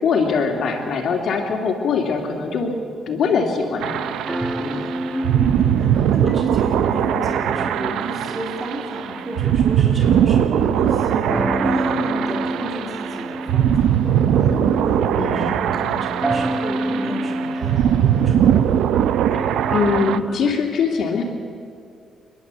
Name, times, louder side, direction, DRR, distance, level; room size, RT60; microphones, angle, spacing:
voice 1, 0.0-2.7 3.1-4.2 4.6-4.9 15.2-15.6 19.3-21.2, left 5 dB, 65° left, 1 dB, 2.5 m, -22 dB
sound 1, 1.9-20.5, right 1 dB, 15° right, 1.3 m, -31 dB
sound 2, 3.8-20.2, right 10 dB, 80° right, 0.7 m, -20 dB
voice 2, 5.1-18.6, equal, 35° right, -1 dB, 3.7 m, -31 dB
28.5 x 11.5 x 8.2 m, 2.3 s
cardioid pair, 90°, 0 cm